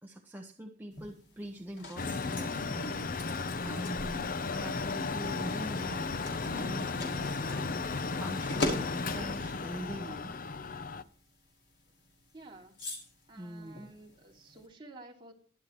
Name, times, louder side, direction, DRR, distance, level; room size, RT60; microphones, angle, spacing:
voice 1, 0.0-3.3 3.6-6.0 6.4-7.7 8.2-10.3 13.4-13.9, right 1 dB, 10° right, 1 dB, 1.2 m, -43 dB
sound 1, 0.9-14.7, left 2 dB, 85° left, 5.3 m, -43 dB
Mechanical fan, 2.0-11.0, left 4 dB, 55° left, 0.7 m, -35 dB
voice 2, 12.3-12.8 13.3-15.3, right 2 dB, 30° right, -1 dB, 2.8 m, -52 dB
22.5 x 8.1 x 3.1 m, 0.43 s
head